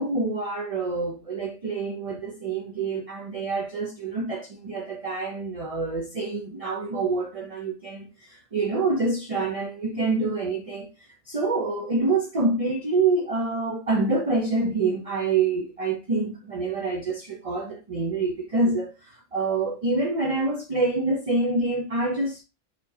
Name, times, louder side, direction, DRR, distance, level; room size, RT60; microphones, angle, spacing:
voice 1, 0.0-8.1 8.5-10.9 11.3-18.9 19.3-22.4, right 3 dB, 35° right, 0.6 m, -26 dB
4.3 x 3.7 x 2.7 m
omnidirectional pair, 1.2 m